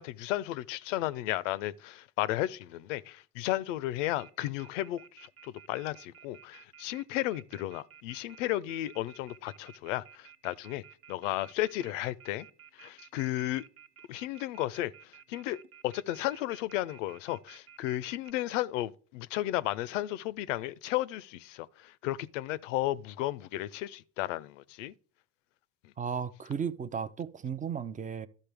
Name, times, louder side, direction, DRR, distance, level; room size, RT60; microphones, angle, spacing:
voice 1, 0.0-10.8 11.1-12.5 12.7-13.7 14.1-24.9 25.8-25.9, left 15 dB, 85° left, 0.5 m, -34 dB
Telephone, 4.0-18.3, right 9 dB, 40° right, 0.8 m, -54 dB
voice 2, 26.0-28.3, right 7 dB, 20° right, 0.4 m, -35 dB
12.0 x 5.4 x 3.4 m
hypercardioid pair, 80°, 36 cm